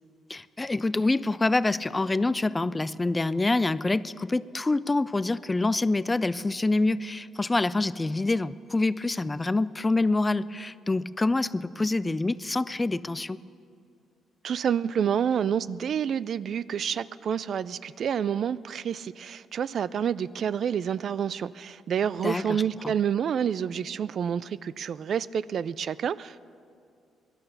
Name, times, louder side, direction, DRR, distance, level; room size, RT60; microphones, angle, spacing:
voice 1, 0.3-13.4 22.2-22.9, left 2 dB, 20° left, 17 dB, 0.4 m, -26 dB
voice 2, 14.4-26.4, right 8 dB, 60° right, 18 dB, 0.3 m, -28 dB
17.5 x 11.5 x 6.8 m, 2.3 s
cardioid pair, 90°, 0 cm